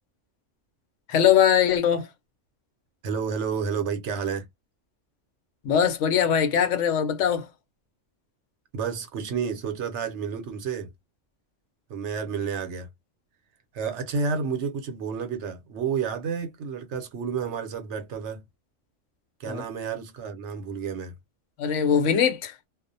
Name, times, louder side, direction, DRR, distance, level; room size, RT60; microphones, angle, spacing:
voice 1, 1.1-2.1 5.6-7.5 19.4-19.6 21.6-22.5, left 8 dB, 75° left, 1.0 m, -21 dB
voice 2, 3.0-4.5 8.7-10.9 11.9-12.9 13.7-18.4 19.4-21.2, right 6 dB, 70° right, 0.9 m, -30 dB
2.4 x 2.1 x 2.5 m
omnidirectional pair, 1.3 m